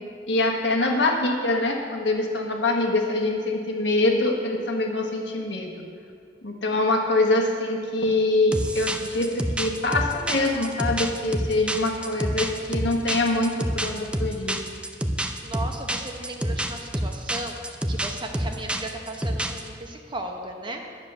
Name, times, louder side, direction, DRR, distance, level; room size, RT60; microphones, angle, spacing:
voice 1, 0.3-5.7 6.4-14.6, left 2 dB, 70° left, 1 dB, 1.4 m, -24 dB
sound 1, 8.5-19.7, right 1 dB, 5° right, 0.5 m, -28 dB
voice 2, 15.4-20.8, right 1 dB, 25° right, 3 dB, 1.0 m, -36 dB
10.5 x 7.2 x 6.7 m, 2.4 s
head